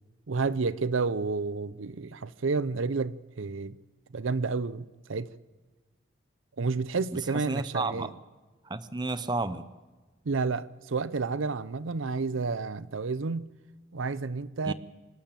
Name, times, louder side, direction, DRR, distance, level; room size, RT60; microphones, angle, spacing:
voice 1, 0.3-3.7 4.1-5.3 6.6-8.1 10.2-13.5 13.9-14.7, right 4 dB, 80° right, 0.6 m, -30 dB
voice 2, 7.1-8.1 8.7-9.7 14.6-14.7, right 3 dB, 20° right, 0.6 m, -32 dB
26.5 x 11.5 x 9.0 m
head